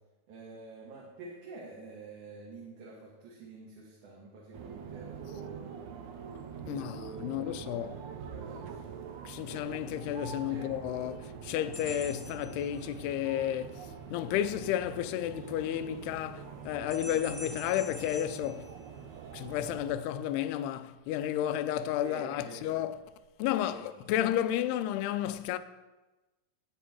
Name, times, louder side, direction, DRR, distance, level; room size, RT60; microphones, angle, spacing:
voice 1, 0.3-5.8 6.6-9.0 10.5-10.7 22.0-22.6 23.6-23.9, right 3 dB, 55° right, 3.4 m, -48 dB
sound 1, 4.5-19.9, right 7 dB, 75° right, 1.7 m, -45 dB
voice 2, 6.7-7.9 9.3-18.7 19.3-23.0 23.4-25.6, left 11 dB, 85° left, 2.7 m, -32 dB
sound 2, 11.7-13.3 16.9-19.4, left 1 dB, 10° right, 2.0 m, -47 dB
16.5 x 9.1 x 4.6 m
omnidirectional pair, 4.5 m